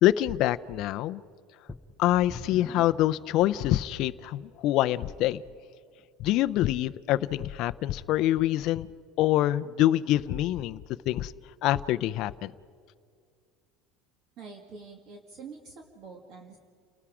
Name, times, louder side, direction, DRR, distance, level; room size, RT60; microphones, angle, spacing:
voice 1, 0.0-1.2 2.0-5.4 6.2-8.9 9.2-10.8 11.1-11.3 11.6-12.5, left 14 dB, 50° left, 12 dB, 0.5 m, -25 dB
sound 1, 1.7-4.1 4.8-4.9 5.5-5.6, left 2 dB, 10° left, 0.8 m, -45 dB
voice 2, 14.4-16.6, right 4 dB, 40° right, 3 dB, 1.9 m, -46 dB
30.0 x 19.5 x 4.9 m, 2.2 s
cardioid pair, 155°, 0 cm